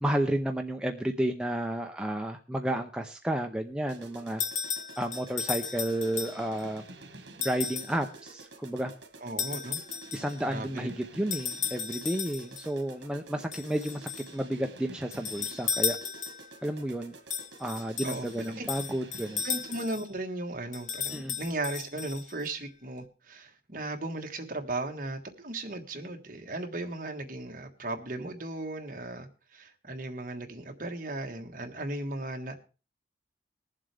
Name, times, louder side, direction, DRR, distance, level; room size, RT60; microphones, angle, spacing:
voice 1, 0.0-4.4 5.0-6.8 7.4-8.9 10.1-16.0 16.6-17.1 17.6-19.4 21.1-21.4, right 1 dB, 5° right, 4 dB, 0.5 m, -31 dB
sound 1, 3.9-20.1, right 2 dB, 75° right, 1.7 m, -49 dB
sound 2, 4.4-6.6 7.4-8.0 9.4-10.4 11.3-12.7 13.5-14.3 15.1-16.6 17.3-20.1 20.7-22.5, left 7 dB, 40° left, 0.9 m, -35 dB
voice 2, 9.2-9.8 10.4-10.9 18.0-18.6 19.4-32.6, right 2 dB, 45° right, 4 dB, 1.5 m, -36 dB
21.5 x 7.5 x 3.4 m, 0.32 s
head